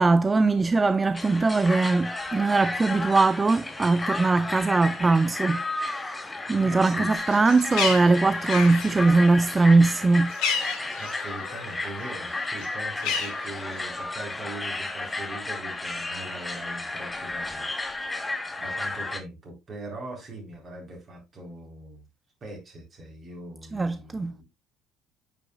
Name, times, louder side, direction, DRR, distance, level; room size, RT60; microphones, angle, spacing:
voice 1, 0.0-10.3 23.7-24.3, right 3 dB, 20° right, 0.3 m, -21 dB
sound 1, 1.1-19.2, left 2 dB, 15° left, 1.2 m, -33 dB
voice 2, 6.6-7.1 11.0-18.3 18.6-22.0 22.4-24.4, right 2 dB, 40° right, 3.9 m, -41 dB
Bird, 7.2-11.8 12.1-14.0, left 6 dB, 60° left, 2.0 m, -32 dB
9.2 x 5.8 x 2.3 m
figure-of-eight pair, 60°, 0 cm